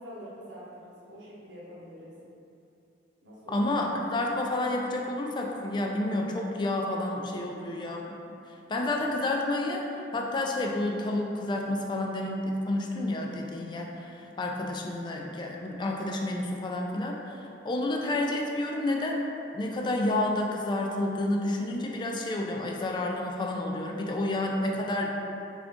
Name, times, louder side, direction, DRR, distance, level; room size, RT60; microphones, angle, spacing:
voice 1, 0.0-2.1 3.2-3.7, equal, 75° right, -8 dB, 0.9 m, -45 dB
voice 2, 3.5-8.2 8.5-9.8 10.1-19.2 19.5-25.2, left 1 dB, 25° left, 0 dB, 0.3 m, -30 dB
3.7 x 2.4 x 3.5 m, 2.8 s
head